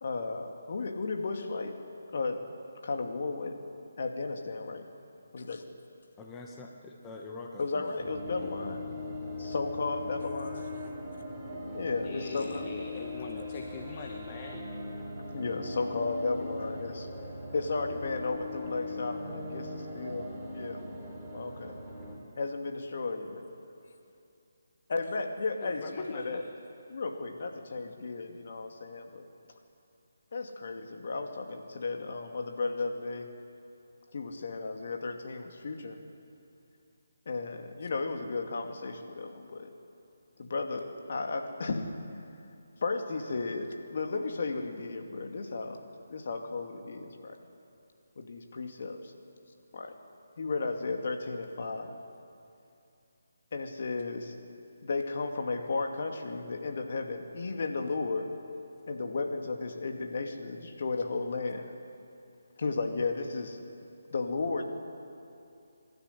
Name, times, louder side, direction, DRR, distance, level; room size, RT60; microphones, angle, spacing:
voice 1, 0.0-1.8 2.1-2.4 2.8-3.6 4.0-4.8 5.3-5.6 7.6-8.8 9.3-10.7 11.7-12.6 15.3-17.1 17.5-20.3 20.5-20.8 21.3-21.8 22.4-23.4 24.9-26.5 26.9-29.3 30.3-33.3 34.1-36.0 37.3-39.7 40.4-41.9 42.8-45.8 46.1-47.4 48.2-49.1 49.7-49.9 50.4-51.9 53.5-54.3 54.8-58.3 58.9-61.7 62.6-63.6 64.1-64.6, left 3 dB, 55° left, 4 dB, 2.5 m, -34 dB
voice 2, 6.2-7.8 8.4-8.8 14.3-14.4, left 3 dB, 15° left, 1 dB, 1.7 m, -45 dB
sound 1, 8.0-22.2, left 2 dB, 5° right, 4.6 m, -40 dB
voice 3, 12.0-14.6 25.6-26.4, left 5 dB, 30° left, 3 dB, 1.4 m, -43 dB
26.0 x 12.5 x 10.0 m, 2.7 s
figure-of-eight pair, 155°, 0 cm